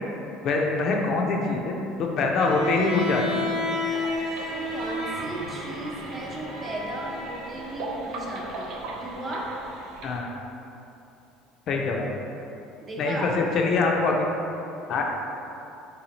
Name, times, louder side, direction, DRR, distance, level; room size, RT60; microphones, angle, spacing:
voice 1, 0.4-3.4 10.0-10.3 11.7-12.1 13.0-14.3 14.9-15.0, left 3 dB, 55° left, 0 dB, 0.4 m, -24 dB
Bowed string instrument, 2.3-7.6, left 1 dB, 85° right, 1.1 m, -31 dB
sound 1, 3.8-10.2, right 2 dB, 70° right, 0.5 m, -39 dB
voice 2, 4.5-9.5 12.8-13.3, right 1 dB, 30° right, -3 dB, 0.7 m, -36 dB
3.8 x 2.7 x 2.9 m, 2.8 s
supercardioid pair, 100°, 0 cm